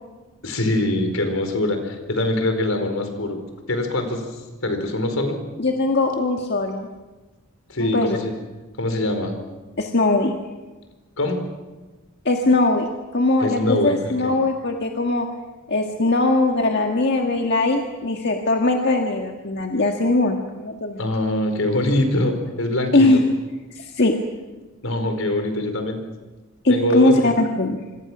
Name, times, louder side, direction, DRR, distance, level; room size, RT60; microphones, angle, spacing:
voice 1, 0.4-3.4 3.7-5.4 7.7-8.3 8.8-9.3 11.2-11.4 13.4-14.1 21.0-23.2 24.8-26.0 26.7-27.2, left 1 dB, 80° left, 6 dB, 4.6 m, -23 dB
voice 2, 5.6-6.9 7.8-8.2 9.8-10.3 12.2-12.9 13.1-15.3 15.7-21.0 22.9-23.2 23.7-24.1 26.6-27.8, left 2 dB, 55° left, 2 dB, 1.8 m, -20 dB
26.5 x 26.0 x 6.2 m, 1.2 s
head